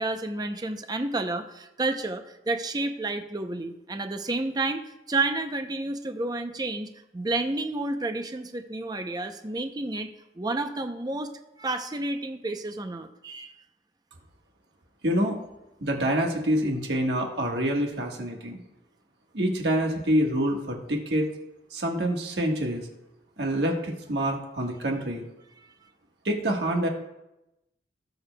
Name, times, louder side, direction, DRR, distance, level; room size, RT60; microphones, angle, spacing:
voice 1, 0.0-4.8 5.1-10.1 10.4-11.3 11.6-13.5, right 2 dB, 20° right, 7 dB, 0.6 m, -30 dB
voice 2, 15.0-15.4 15.8-18.6 19.3-21.3 21.7-22.9 23.4-25.2 26.2-26.9, equal, 65° right, 1 dB, 1.4 m, -26 dB
17.5 x 6.8 x 2.2 m, 0.90 s
head